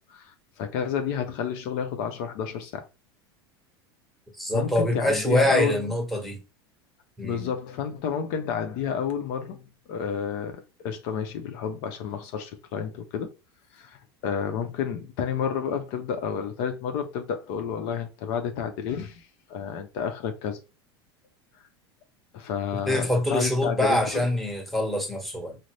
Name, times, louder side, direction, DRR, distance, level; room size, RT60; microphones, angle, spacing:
voice 1, 0.0-2.9 4.5-5.9 7.2-9.6 9.9-13.3 13.7-20.6 22.3-24.3, left 7 dB, 60° left, 0.7 m, -30 dB
voice 2, 4.4-6.4 7.2-7.5 22.9-25.6, left 1 dB, ahead, 1.3 m, -25 dB
3.8 x 2.0 x 3.1 m
hypercardioid pair, 90°, 13 cm